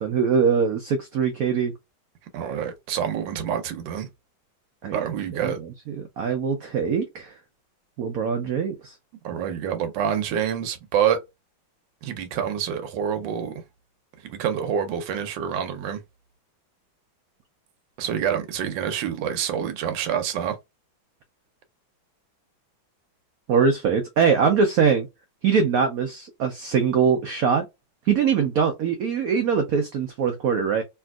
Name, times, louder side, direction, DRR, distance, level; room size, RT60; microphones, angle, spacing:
voice 1, 0.0-1.7 4.8-5.1 5.4-7.3 8.0-9.0 23.5-25.1 25.4-27.7 28.1-30.8, right 6 dB, 90° right, 0.7 m, -22 dB
voice 2, 2.3-4.1 4.9-5.6 9.2-11.2 12.0-13.6 14.2-16.0 18.0-20.6, right 8 dB, 75° right, 1.3 m, -27 dB
3.4 x 2.7 x 2.2 m
omnidirectional pair, 2.2 m